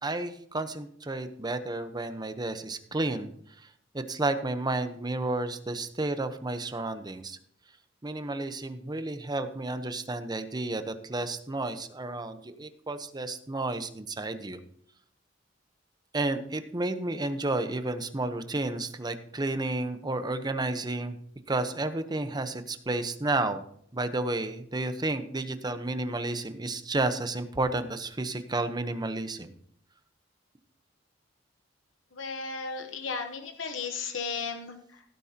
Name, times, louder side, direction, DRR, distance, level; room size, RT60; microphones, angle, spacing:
voice 1, 0.0-3.3 3.9-7.4 8.0-14.6 16.1-21.2 21.5-23.6 23.9-29.5, right 2 dB, 20° right, 9 dB, 0.9 m, -31 dB
voice 2, 32.1-35.0, left 5 dB, 90° left, 5 dB, 1.1 m, -35 dB
16.5 x 8.9 x 2.9 m, 0.65 s
head